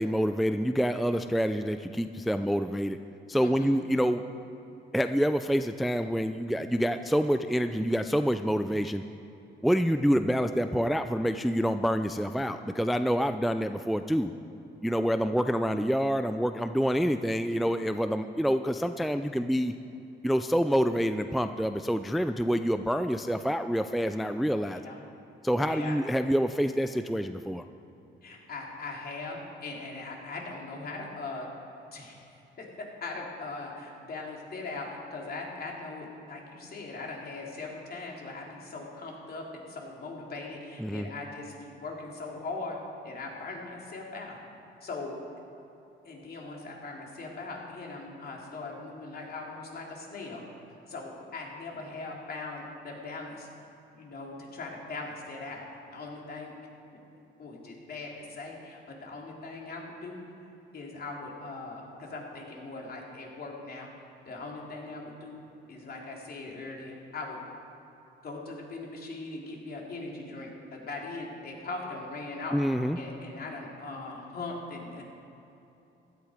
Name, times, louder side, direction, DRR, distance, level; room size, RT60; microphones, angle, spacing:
voice 1, 0.0-3.0 3.3-4.2 4.9-9.0 9.6-14.3 14.8-19.7 20.2-24.8 25.4-27.6 40.8-41.1 72.5-73.0, equal, ahead, 9 dB, 0.4 m, -27 dB
voice 2, 3.4-3.8 24.7-25.0 25.6-26.0 28.2-31.5 31.9-32.2 32.6-32.7 33.0-42.8 43.0-44.4 44.8-45.2 46.0-50.4 50.9-53.5 53.9-55.6 55.9-56.5 57.4-60.2 60.7-65.4 65.7-67.4 68.2-72.6 73.0-75.0, left 3 dB, 50° left, -1 dB, 3.3 m, -40 dB
16.0 x 11.5 x 5.1 m, 2.9 s
cardioid pair, 90°, 20 cm